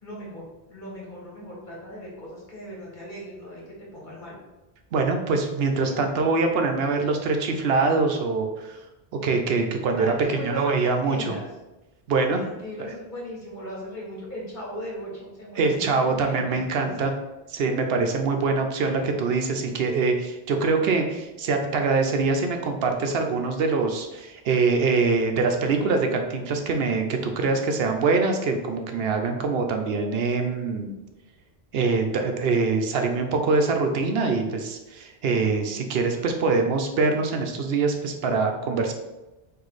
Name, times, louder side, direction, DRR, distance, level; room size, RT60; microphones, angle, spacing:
voice 1, 0.0-3.6 3.9-4.4 10.0-11.5 12.3-17.1, equal, 50° left, -4 dB, 1.7 m, -38 dB
voice 2, 4.9-8.8 9.1-11.3 12.1-12.4 15.6-17.1 17.5-30.9 31.7-38.9, right 4 dB, 75° right, 4 dB, 0.8 m, -24 dB
4.8 x 2.6 x 4.0 m, 1.0 s
omnidirectional pair, 1.1 m